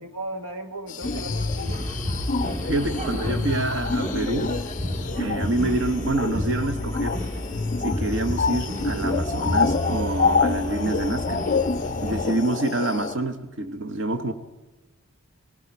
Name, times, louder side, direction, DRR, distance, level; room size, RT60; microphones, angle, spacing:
voice 1, 0.0-1.8 2.5-3.4 12.1-12.5, right 2 dB, 85° right, 7 dB, 1.4 m, -37 dB
sound 1, 0.9-13.1, left 4 dB, 35° left, 0.4 m, -28 dB
sound 2, 1.0-12.3, left 1 dB, 35° right, 1.8 m, -30 dB
voice 2, 2.4-4.6 5.2-7.2 7.8-11.7 12.0-14.3, right 2 dB, 55° right, 9 dB, 1.0 m, -27 dB
19.0 x 15.5 x 4.5 m, 1.2 s
head